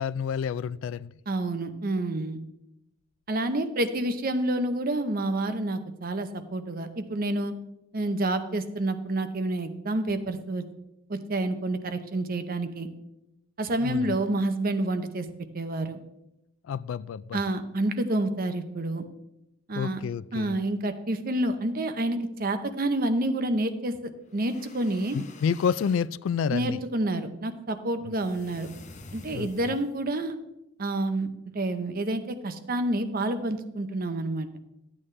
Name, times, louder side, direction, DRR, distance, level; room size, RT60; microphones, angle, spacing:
voice 1, 0.0-1.1 13.8-14.2 16.7-17.4 19.7-20.5 25.1-26.8 29.3-29.7, left 7 dB, 85° left, 0.3 m, -29 dB
voice 2, 1.3-2.4 3.3-7.5 7.9-10.6 11.1-12.9 13.6-15.3 15.5-16.0 17.3-19.0 19.7-20.0 20.3-25.2 26.5-28.7 29.1-30.4 30.8-31.3 31.5-34.5, right 1 dB, 50° right, 0.7 m, -28 dB
sound 1, 24.3-26.1 28.2-30.0, left 3 dB, 40° left, 0.8 m, -48 dB
12.0 x 8.6 x 3.3 m
head